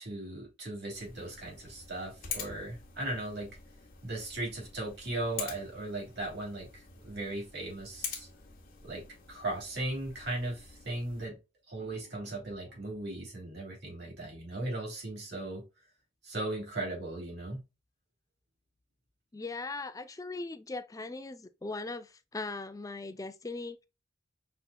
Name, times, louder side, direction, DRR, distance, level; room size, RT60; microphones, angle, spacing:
voice 1, 0.0-3.5 4.0-8.3 8.8-11.4 11.7-15.6 16.2-17.6, right 2 dB, 55° right, 3.0 m, -37 dB
sound 1, 0.9-11.3, left 7 dB, 45° left, 1.4 m, -46 dB
voice 2, 19.3-23.9, left 3 dB, 15° left, 0.4 m, -39 dB
5.5 x 4.1 x 2.3 m
head